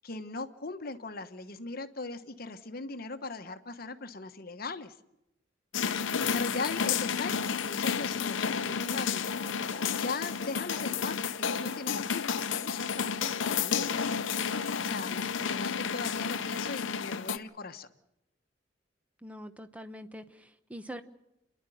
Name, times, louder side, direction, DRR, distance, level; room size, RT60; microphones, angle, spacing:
voice 1, 0.0-5.0 6.3-9.6 9.9-14.1 14.8-17.9, left 3 dB, 50° left, 9 dB, 1.1 m, -39 dB
sound 1, 5.7-17.4, left 6 dB, 85° left, 0.7 m, -31 dB
Laughter, 6.2-11.5 12.8-13.4, left 2 dB, 15° left, 2.7 m, -56 dB
voice 2, 19.2-21.0, equal, 5° right, 9 dB, 0.9 m, -44 dB
29.0 x 11.0 x 9.2 m, 0.89 s
head